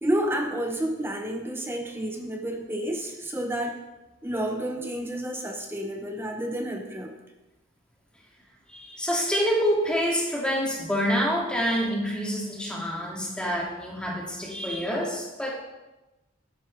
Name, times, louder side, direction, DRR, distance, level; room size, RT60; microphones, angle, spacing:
voice 1, 0.0-3.8 4.2-7.1, right 1 dB, 10° right, 3 dB, 0.8 m, -30 dB
voice 2, 8.7-15.6, equal, 5° left, -2 dB, 2.0 m, -27 dB
12.0 x 10.0 x 3.2 m, 1.0 s
head